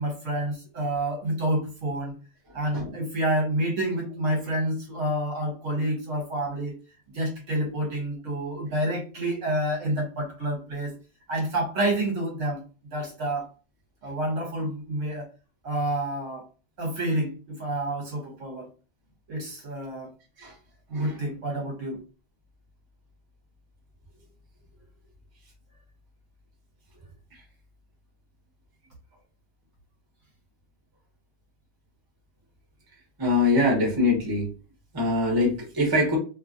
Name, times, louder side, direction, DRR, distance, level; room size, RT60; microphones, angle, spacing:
voice 1, 0.0-2.1 2.5-6.7 7.1-10.9 11.3-13.5 14.0-15.3 15.6-16.5 16.8-18.7 19.3-20.1 20.9-22.0, right 1 dB, 60° right, -1 dB, 1.1 m, -28 dB
voice 2, 33.2-34.4 34.9-36.2, left 2 dB, 20° right, -1 dB, 0.8 m, -23 dB
2.8 x 2.4 x 2.5 m, 0.34 s
omnidirectional pair, 1.6 m